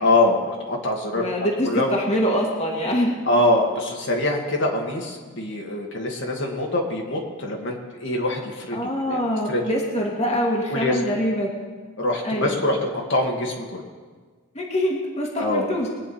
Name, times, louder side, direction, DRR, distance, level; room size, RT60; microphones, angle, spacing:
voice 1, 0.0-1.2 1.6-1.9 3.3-8.8 9.1-9.2 9.5-9.6 10.7-11.0 12.0-13.8 15.4-15.7, left 2 dB, 55° left, 0 dB, 1.9 m, -24 dB
voice 2, 1.2-3.2 8.7-11.6 12.2-12.7 14.5-15.9, equal, 30° left, -1 dB, 1.8 m, -24 dB
22.0 x 9.1 x 4.3 m, 1.5 s
head